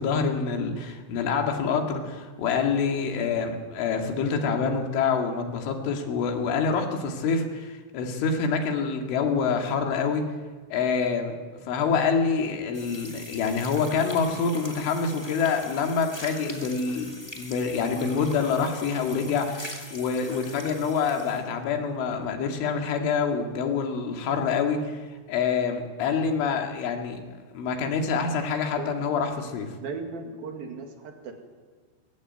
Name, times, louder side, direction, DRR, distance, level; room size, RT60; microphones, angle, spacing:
voice 1, 0.0-10.2 10.7-11.4 11.7-25.0 25.3-27.2 27.5-29.7, left 5 dB, 80° left, 3 dB, 4.7 m, -26 dB
sound 1, 12.7-21.5, left 1 dB, 35° left, 0.4 m, -42 dB
voice 2, 29.7-31.3, right 4 dB, 55° right, 4 dB, 3.6 m, -37 dB
22.0 x 15.5 x 9.3 m, 1.4 s
omnidirectional pair, 5.5 m